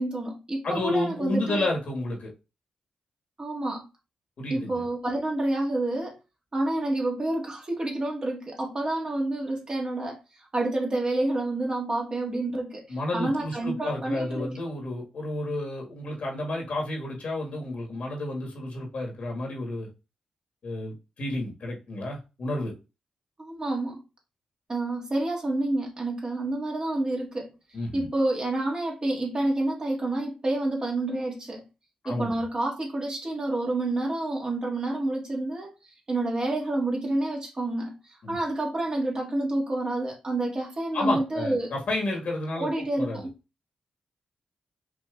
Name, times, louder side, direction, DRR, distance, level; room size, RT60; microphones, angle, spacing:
voice 1, 0.0-1.7 3.4-3.8 4.5-6.1 6.5-10.2 10.5-14.5 23.4-24.0 24.7-27.5 27.9-31.6 32.0-35.7 36.1-41.7 42.5-43.3, right 2 dB, 35° right, 1.6 m, -28 dB
voice 2, 0.6-2.3 4.4-4.8 12.9-19.9 20.6-22.7 27.7-28.0 32.0-32.3 38.2-38.3 40.9-42.7 42.9-43.3, left 2 dB, 65° left, 1.7 m, -31 dB
5.1 x 2.8 x 2.4 m
cardioid pair, 60°, 2 cm